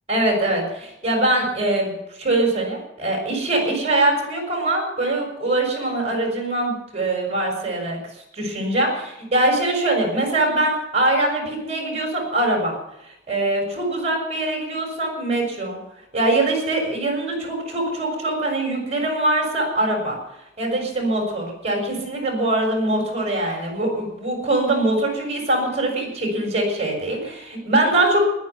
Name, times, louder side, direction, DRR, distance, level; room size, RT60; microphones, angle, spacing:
voice 1, 0.1-8.0 8.3-12.7 13.3-15.8 16.1-20.2 20.6-28.2, right 2 dB, 35° right, 1 dB, 6.5 m, -22 dB
20.0 x 10.5 x 6.0 m, 0.83 s
head